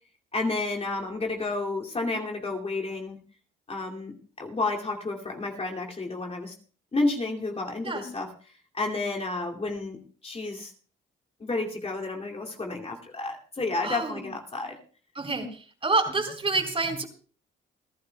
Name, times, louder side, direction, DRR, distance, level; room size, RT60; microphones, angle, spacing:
voice 1, 0.3-3.2 3.7-6.5 6.9-8.3 8.7-10.7 11.4-14.8, left 2 dB, 30° left, 1 dB, 2.6 m, -31 dB
voice 2, 13.8-14.2 15.2-17.0, right 3 dB, 30° right, 4 dB, 4.1 m, -28 dB
29.5 x 11.5 x 2.3 m, 0.39 s
cardioid pair, 90°, 20 cm